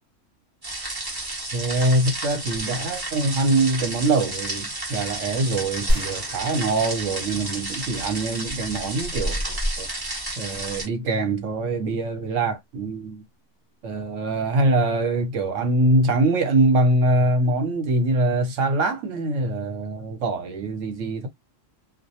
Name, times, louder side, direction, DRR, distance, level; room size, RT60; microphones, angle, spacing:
sound 1, 0.6-10.9, right 1 dB, 20° right, 0.8 m, -31 dB
voice 1, 1.5-10.1 10.4-13.2 13.8-21.3, right 2 dB, 75° right, 1.0 m, -23 dB
sound 2, 5.9-7.8 8.2-8.3, equal, 45° right, 0.6 m, -28 dB
2.4 x 2.1 x 2.7 m
omnidirectional pair, 1.3 m